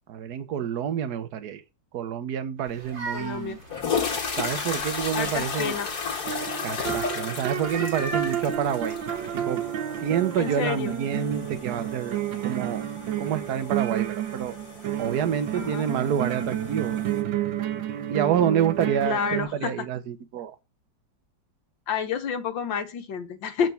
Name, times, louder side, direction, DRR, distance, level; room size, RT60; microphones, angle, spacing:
voice 1, 0.1-1.6 1.9-3.6 4.4-5.8 6.6-9.0 9.3-9.6 10.0-12.8 13.2-14.6 15.0-17.0 18.1-20.5, right 8 dB, 60° right, 1.4 m, -28 dB
sound 1, 2.6-4.7 5.2-6.4 7.5-9.3, right 2 dB, 40° right, 2.1 m, -39 dB
sound 2, 2.9-3.0 3.6-17.2, left 5 dB, 55° left, 2.4 m, -35 dB
voice 2, 3.1-3.6 5.2-5.9 10.4-10.9 15.6-15.9 19.1-19.9 21.9-23.7, left 7 dB, 80° left, 1.9 m, -29 dB
sound 3, 6.2-19.4, right 11 dB, 85° right, 1.6 m, -30 dB
8.1 x 4.5 x 7.0 m
omnidirectional pair, 2.0 m